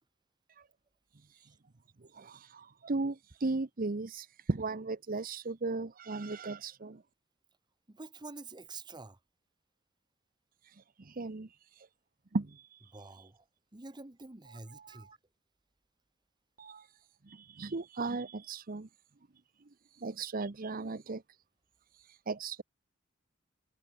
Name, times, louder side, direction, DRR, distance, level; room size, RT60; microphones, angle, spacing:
voice 1, 2.1-7.0 10.6-11.9 12.3-12.9 14.7-15.2 16.6-16.9 17.2-18.9 19.9-21.2 21.9-22.6, right 3 dB, 45° right, 0.8 m, -37 dB
voice 2, 7.9-9.2 12.9-13.4 13.7-15.1, right 3 dB, 20° right, 1.1 m, -47 dB
head